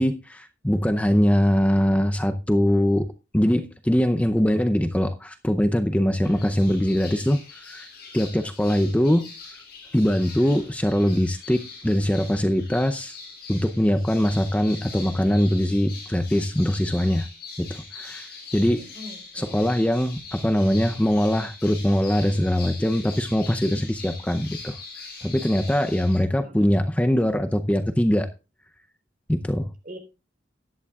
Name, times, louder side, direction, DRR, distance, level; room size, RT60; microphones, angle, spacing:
voice 1, 0.0-3.1 3.3-7.9 8.1-9.3 9.9-13.2 13.5-17.3 17.6-18.3 18.5-18.9 19.3-24.8 25.2-28.3 29.3-29.7, equal, 10° left, 0.6 m, -22 dB
sound 1, 6.2-26.2, left 4 dB, 60° left, 6.9 m, -42 dB
voice 2, 18.8-19.7 26.4-26.7 29.8-30.0, equal, 50° right, 3.7 m, -41 dB
15.5 x 11.0 x 2.4 m
head